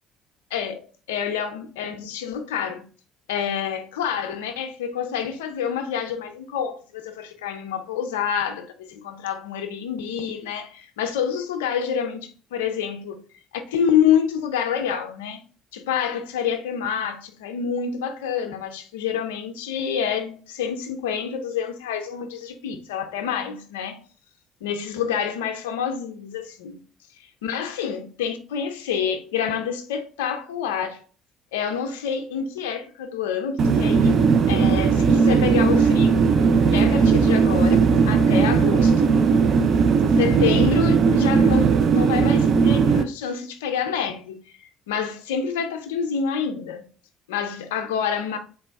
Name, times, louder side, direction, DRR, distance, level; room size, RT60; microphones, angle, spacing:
voice 1, 0.5-2.8 3.3-13.2 13.5-15.4 15.7-24.0 24.6-26.8 27.4-31.0 31.5-36.3 36.7-39.1 40.2-44.4 44.9-46.8 47.3-48.4, left 7 dB, 75° left, 0.5 m, -27 dB
sound 1, 33.6-43.0, right 5 dB, 50° right, 0.4 m, -18 dB
4.1 x 2.2 x 4.5 m
figure-of-eight pair, 55°, 0 cm